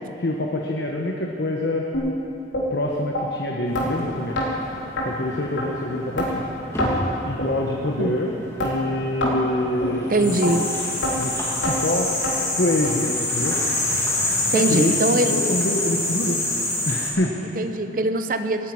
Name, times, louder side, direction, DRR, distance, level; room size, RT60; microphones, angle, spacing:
voice 1, 0.2-1.9 2.7-4.4 5.0-6.5 7.2-8.3 8.6-10.6 11.2-11.4 11.6-12.1 12.6-13.6 14.4-16.5 16.9-17.5, left 1 dB, 65° left, 0 dB, 1.1 m, -26 dB
sound 1, 1.9-2.1 2.5-2.7 3.1-3.2 3.7-3.9 4.3-4.5 5.0-5.1 5.6-5.7 6.2-6.3 6.8-6.9 7.4-7.5 8.0-8.1 8.6-8.7 9.2-9.4 9.8-9.9 10.4-10.5 11.0-11.1 11.6-11.8 12.2-12.3 12.8-12.9 13.4-13.5 14.1-14.2 14.7-14.8, equal, 85° left, 3.5 m, -25 dB
sound 2, 3.7-17.1, left 2 dB, 15° left, 2.3 m, -27 dB
voice 2, 10.1-10.6 14.5-15.3 17.5-18.7, right 2 dB, 45° right, 9 dB, 0.8 m, -22 dB
14.5 x 9.3 x 9.5 m, 3.0 s
head